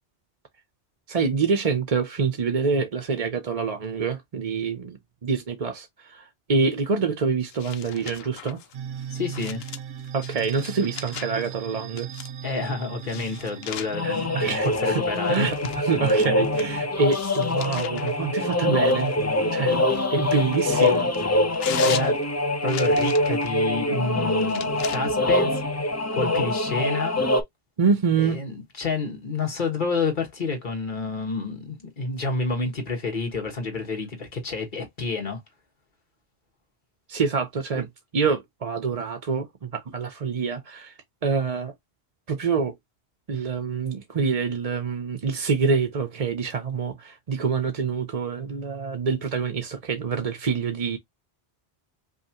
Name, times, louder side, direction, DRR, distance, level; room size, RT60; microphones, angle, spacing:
voice 1, 1.1-8.6 10.1-12.1 14.0-15.0 15.3-19.2 19.5-19.8 20.1-21.1 27.8-28.4 37.1-37.9 38.1-40.9 41.2-41.7 42.3-42.7 43.3-51.0, right 5 dB, 40° right, 0.7 m, -26 dB
sound 1, 7.5-11.5 12.0-12.5 13.0-16.7 17.1-18.2 18.8-23.6 24.4-25.0, left 9 dB, 70° left, 0.9 m, -39 dB
sound 2, 8.7-14.6, right 8 dB, 75° right, 0.9 m, -37 dB
voice 2, 9.1-9.6 12.4-15.7 19.5-19.6 21.8-22.2 22.6-25.6 26.1-27.2 28.2-35.4 37.7-37.8, left 3 dB, 50° left, 1.6 m, -29 dB
sound 3, 13.9-27.4, left 1 dB, 20° left, 0.5 m, -24 dB
5.3 x 2.4 x 2.8 m
omnidirectional pair, 1.1 m